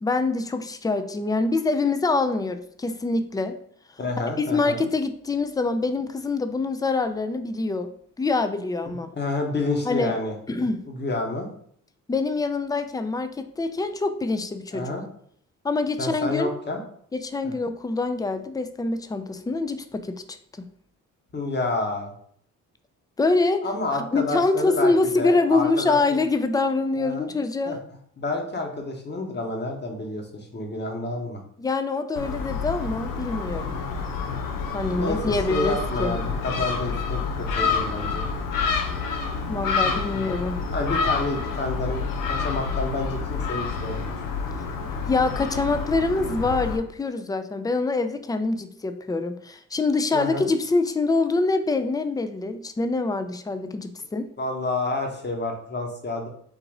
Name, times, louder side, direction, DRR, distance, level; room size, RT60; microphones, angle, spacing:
voice 1, 0.0-3.6 4.2-7.9 8.2-9.1 9.9-10.1 10.5-10.9 12.1-14.9 15.6-16.5 17.1-20.4 23.2-23.6 24.1-27.8 31.6-33.8 34.7-36.1 39.5-40.6 45.1-54.3, left 3 dB, 10° left, 9 dB, 0.4 m, -25 dB
voice 2, 4.0-4.8 8.9-10.3 10.9-11.5 14.7-15.0 16.0-16.8 17.4-17.5 21.3-22.1 23.6-26.0 27.0-27.3 27.7-27.8 28.2-31.4 34.9-35.2 35.5-38.3 40.7-44.1 50.1-50.5 54.4-56.3, left 2 dB, 30° left, 2 dB, 1.1 m, -29 dB
Gull seagull, 32.2-46.8, left 5 dB, 80° left, 0.7 m, -28 dB
3.8 x 2.5 x 4.7 m, 0.63 s
cardioid pair, 70°, 32 cm